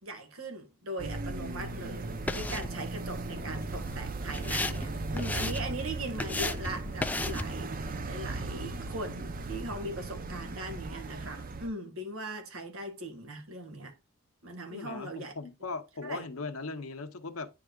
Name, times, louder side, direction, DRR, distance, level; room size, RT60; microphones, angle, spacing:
voice 1, 0.0-13.9 14.4-15.3 16.0-16.2, right 1 dB, 75° right, 1.7 m, -40 dB
sound 1, 1.0-11.7, right 3 dB, 40° right, 0.6 m, -37 dB
sound 2, 1.6-7.7, left 2 dB, 10° left, 0.4 m, -37 dB
voice 2, 14.7-17.5, left 3 dB, 85° left, 0.9 m, -39 dB
9.9 x 4.8 x 2.3 m
head